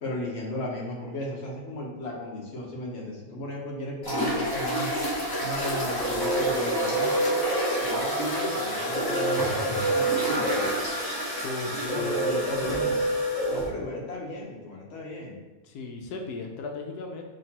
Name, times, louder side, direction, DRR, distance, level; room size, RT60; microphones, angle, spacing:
voice 1, 0.0-4.9 5.4-7.3 7.8-10.7 11.9-13.0 13.5-15.4, left 1 dB, 55° left, -3 dB, 1.2 m, -35 dB
sound 1, 4.0-13.7, equal, 25° left, 0.5 m, -30 dB
sound 2, 5.6-14.3, right 2 dB, ahead, 1.2 m, -29 dB
voice 2, 11.4-12.9 15.6-17.3, left 3 dB, 85° left, 2 dB, 1.1 m, -36 dB
6.4 x 2.9 x 2.8 m, 1.2 s
omnidirectional pair, 1.6 m